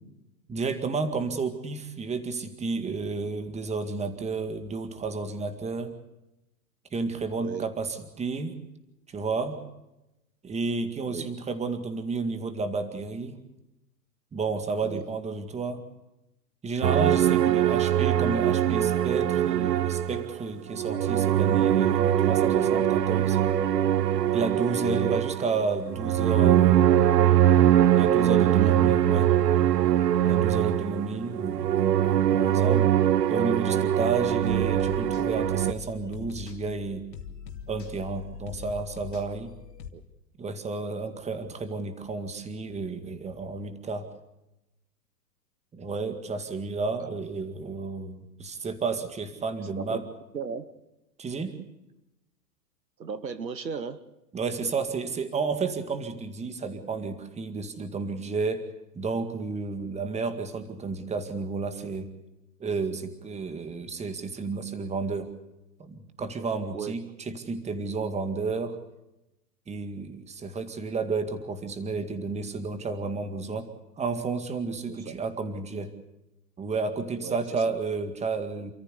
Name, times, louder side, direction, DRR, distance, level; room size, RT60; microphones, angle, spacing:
voice 1, 0.5-5.9 6.9-8.6 9.1-9.6 10.4-13.4 14.3-15.8 16.6-23.4 24.3-27.0 27.9-29.3 30.2-32.9 33.3-37.1 37.7-39.5 40.4-44.1 45.7-50.0 51.2-51.6 54.3-58.7 58.9-62.1 62.6-65.3 65.8-68.8 69.7-73.7 74.0-75.9 76.6-78.7, right 4 dB, 15° right, 9 dB, 2.0 m, -31 dB
sound 1, 16.8-20.4 20.7-35.7, right 11 dB, 70° right, 1.0 m, -22 dB
voice 2, 28.4-28.7 39.9-40.0 47.0-47.2 49.8-50.7 53.0-54.0 66.7-67.0 74.9-75.1 77.2-77.6, right 6 dB, 90° right, 13 dB, 1.4 m, -36 dB
sound 2, 34.0-39.9, left 7 dB, 80° left, 2.7 m, -42 dB
28.0 x 14.0 x 8.3 m, 0.94 s
hypercardioid pair, 115°, 49 cm